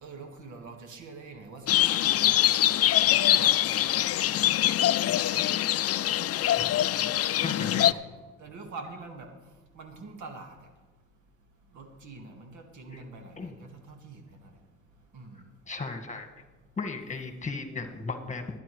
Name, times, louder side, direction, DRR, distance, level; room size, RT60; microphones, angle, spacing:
voice 1, 0.0-2.8 3.2-4.6 5.0-5.5 6.9-7.2 7.7-8.0 8.4-9.3 9.8-10.5 11.7-14.2 15.1-15.4, right 3 dB, 75° right, 4 dB, 1.9 m, -45 dB
sound 1, 1.7-7.9, left 13 dB, 55° left, 0.4 m, -24 dB
voice 2, 7.4-7.9 12.9-13.0 13.4-13.5 15.3-16.4 16.8-18.6, left 4 dB, 25° left, 4 dB, 1.8 m, -36 dB
21.0 x 9.9 x 3.2 m, 1.3 s
cardioid pair, 90°, 30 cm